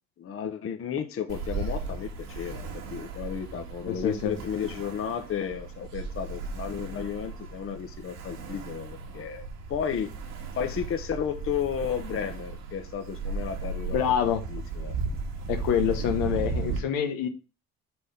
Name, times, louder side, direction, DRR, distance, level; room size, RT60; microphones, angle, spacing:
voice 1, 0.2-10.1 10.5-13.9 14.2-14.9, left 8 dB, 40° left, 1.0 m, -33 dB
Ocean, 1.3-16.8, right 4 dB, 80° right, 2.0 m, -36 dB
voice 2, 3.9-4.4 13.9-14.4 15.5-17.3, left 9 dB, 85° left, 1.2 m, -26 dB
6.1 x 3.6 x 5.7 m
cardioid pair, 105°, 33 cm